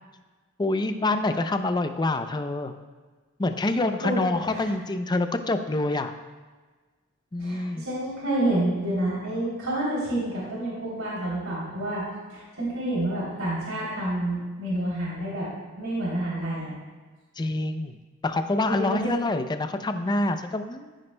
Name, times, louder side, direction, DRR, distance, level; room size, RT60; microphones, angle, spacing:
voice 1, 0.6-2.7 3.4-6.1 7.3-7.8 17.4-18.0 18.2-21.0, left 2 dB, 20° left, 8 dB, 0.4 m, -26 dB
voice 2, 4.0-4.7 7.4-12.0 12.3-15.5 15.8-16.8 18.7-19.1, right 1 dB, 70° right, -6 dB, 3.1 m, -29 dB
14.0 x 9.5 x 2.2 m, 1.4 s
head